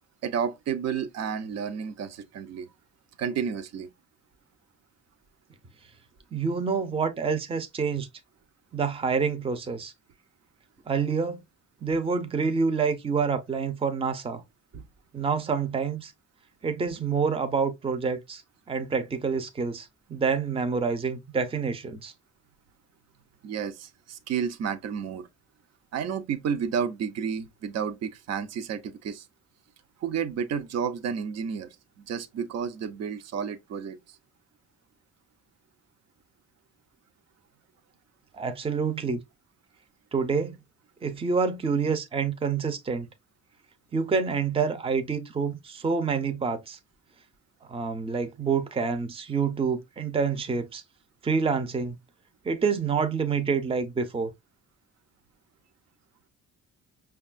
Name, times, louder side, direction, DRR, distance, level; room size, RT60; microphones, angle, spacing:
voice 1, 0.2-2.7 3.2-3.9 14.7-14.8 23.4-25.3 25.9-29.2 30.0-34.2, right 7 dB, 60° right, 0.6 m, -31 dB
voice 2, 6.3-8.1 8.7-9.9 10.9-11.4 11.8-14.4 15.1-16.1 16.6-18.4 18.7-22.1 38.3-39.2 40.1-40.5 41.0-43.1 43.9-46.8 47.7-50.8 51.2-52.0 52.4-54.3, right 5 dB, 20° right, 0.6 m, -27 dB
5.2 x 2.3 x 2.4 m
cardioid pair, 90°, 30 cm